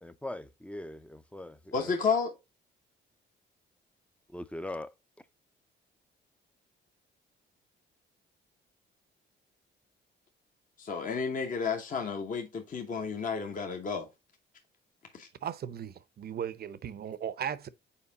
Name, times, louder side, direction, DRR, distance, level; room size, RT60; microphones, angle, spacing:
voice 1, 0.0-2.0 4.3-4.9, left 1 dB, 5° left, 0.5 m, -41 dB
voice 2, 1.7-2.3 10.8-14.1 15.1-15.3, left 5 dB, 40° left, 1.0 m, -31 dB
voice 3, 15.4-17.7, right 9 dB, 50° right, 0.6 m, -37 dB
5.6 x 4.4 x 3.9 m
cardioid pair, 90°, 20 cm